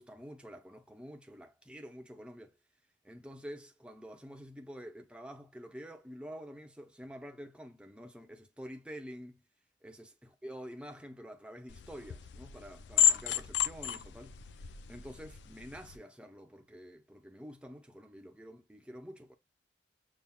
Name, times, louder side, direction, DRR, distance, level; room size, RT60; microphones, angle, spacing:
voice 1, 0.0-2.6 3.0-9.4 9.8-14.4 14.6-19.3, equal, 5° right, 0.6 m, -48 dB
sound 1, 11.7-16.0, left 9 dB, 75° left, 0.4 m, -32 dB
7.0 x 2.5 x 2.2 m
head